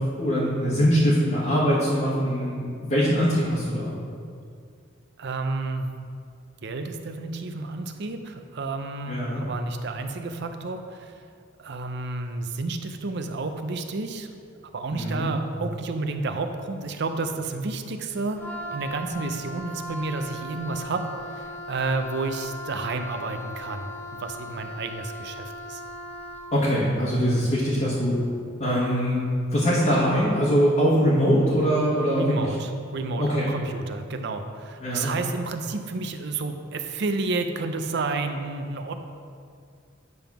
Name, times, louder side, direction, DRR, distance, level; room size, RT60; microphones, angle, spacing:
voice 1, 0.0-3.9 9.1-9.4 14.9-15.3 26.5-28.2 28.6-29.2 29.5-32.5 33.2-33.5 34.8-35.1, equal, 35° left, -7 dB, 1.1 m, -22 dB
voice 2, 5.2-5.9 6.6-11.1 11.6-14.3 14.7-18.4 18.7-21.1 21.3-23.9 24.2-25.8 32.2-38.9, right 3 dB, 60° right, 7 dB, 0.6 m, -30 dB
Wind instrument woodwind instrument, 18.4-26.5, left 1 dB, 10° left, 0.7 m, -38 dB
9.4 x 3.5 x 5.8 m, 2.3 s
head